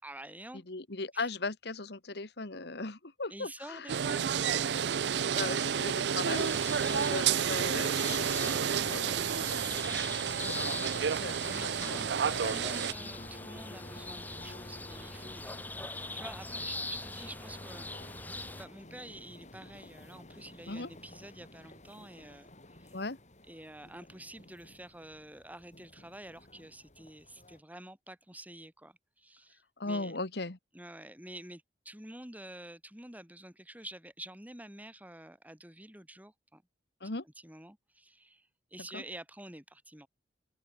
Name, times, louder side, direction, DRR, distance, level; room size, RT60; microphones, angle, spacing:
voice 1, 0.0-0.6 1.1-1.3 3.3-4.7 11.4-12.1 12.4-17.9 18.6-23.0 23.5-30.2 30.7-36.6 37.0-40.1, right 1 dB, 10° right, 6.5 m, -49 dB
voice 2, 0.7-4.2 5.3-10.6 10.9-12.0 12.3-12.6 20.7-20.9 22.9-23.2 29.8-30.6 37.0-37.2 38.9-39.0, left 3 dB, 65° left, 1.7 m, -39 dB
sound 1, 3.9-12.9, right 7 dB, 70° right, 0.5 m, -30 dB
sound 2, 6.3-18.7, left 2 dB, 10° left, 2.1 m, -42 dB
sound 3, 12.9-27.6, left 2 dB, 40° left, 7.2 m, -52 dB
open air
head